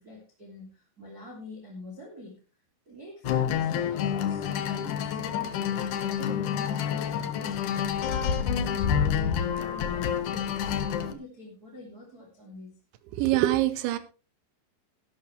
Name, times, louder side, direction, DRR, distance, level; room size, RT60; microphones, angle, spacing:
voice 1, 0.0-2.4 2.9-5.6 5.9-7.6 8.0-10.5 10.9-12.7, left 1 dB, 25° right, -1 dB, 2.6 m, -45 dB
sound 1, 3.2-11.1, left 8 dB, 80° left, 1.7 m, -28 dB
voice 2, 13.1-14.0, right 15 dB, 85° right, 13 dB, 3.2 m, -24 dB
13.5 x 12.0 x 3.2 m, 0.33 s
omnidirectional pair, 5.2 m